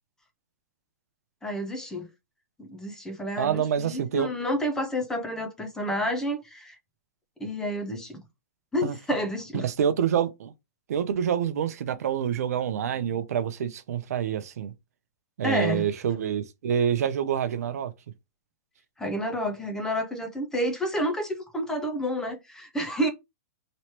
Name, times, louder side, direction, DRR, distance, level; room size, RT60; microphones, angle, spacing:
voice 1, 1.4-2.1 2.6-6.8 7.4-8.2 8.7-9.6 15.4-15.8 19.0-23.1, equal, 5° left, 0.5 m, -29 dB
voice 2, 3.4-4.3 8.8-9.0 9.5-10.5 10.9-14.7 15.4-17.9, right 9 dB, 70° right, 0.6 m, -27 dB
3.1 x 3.0 x 2.9 m
hypercardioid pair, 155°, 9 cm